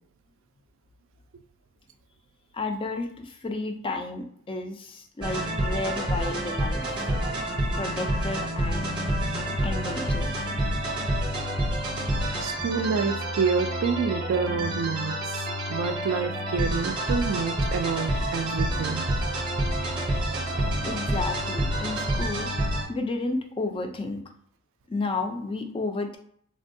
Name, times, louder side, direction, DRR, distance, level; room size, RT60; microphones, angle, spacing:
voice 1, 2.5-6.8 7.7-8.9 9.6-10.5 20.8-22.5 22.9-24.2 24.9-26.2, left 3 dB, 25° left, 5 dB, 0.3 m, -32 dB
sound 1, 5.2-22.8, right 1 dB, 20° right, 0.7 m, -28 dB
voice 2, 12.4-15.4 15.7-19.0 20.3-20.7, right 5 dB, 60° right, 9 dB, 0.3 m, -28 dB
3.4 x 2.2 x 2.6 m, 0.65 s
head